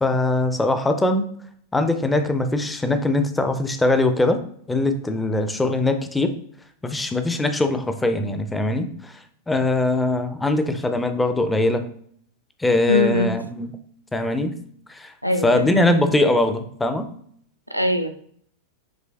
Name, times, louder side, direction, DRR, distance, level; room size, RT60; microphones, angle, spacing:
voice 1, 0.0-1.2 1.7-4.4 4.7-6.3 6.8-9.1 9.5-11.9 12.6-13.7 14.1-14.5 14.9-15.1 15.4-17.1, left 2 dB, 10° left, 8 dB, 0.5 m, -21 dB
voice 2, 12.9-13.3 15.2-16.0 17.7-18.1, left 1 dB, 90° right, 7 dB, 0.5 m, -22 dB
7.4 x 3.1 x 2.3 m, 0.63 s
figure-of-eight pair, 90°, 0 cm